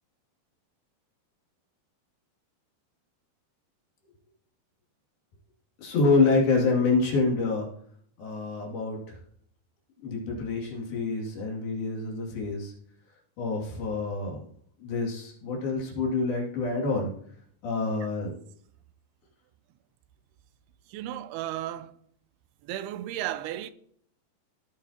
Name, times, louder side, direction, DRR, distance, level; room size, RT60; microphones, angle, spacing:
voice 1, 5.8-7.7 8.2-9.2 10.0-12.7 13.4-14.4 14.8-17.1 17.6-18.3, left 3 dB, 70° left, 4.4 m, -27 dB
voice 2, 20.9-21.9 22.6-23.7, right 13 dB, 85° right, 2.6 m, -34 dB
17.0 x 8.9 x 2.9 m
omnidirectional pair, 4.5 m